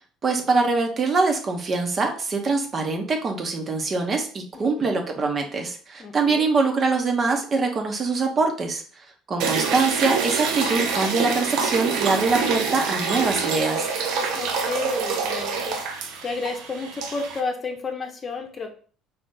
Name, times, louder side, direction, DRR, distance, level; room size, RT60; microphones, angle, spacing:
voice 1, 0.2-8.8 9.3-13.9, right 3 dB, 35° right, 3 dB, 0.9 m, -23 dB
voice 2, 4.5-5.0 6.0-6.4 14.3-15.9 16.2-18.7, left 4 dB, 35° left, 3 dB, 0.8 m, -31 dB
sound 1, 9.4-17.4, right 5 dB, 60° right, 0.5 m, -26 dB
4.2 x 2.5 x 3.8 m, 0.42 s
figure-of-eight pair, 55°, 0 cm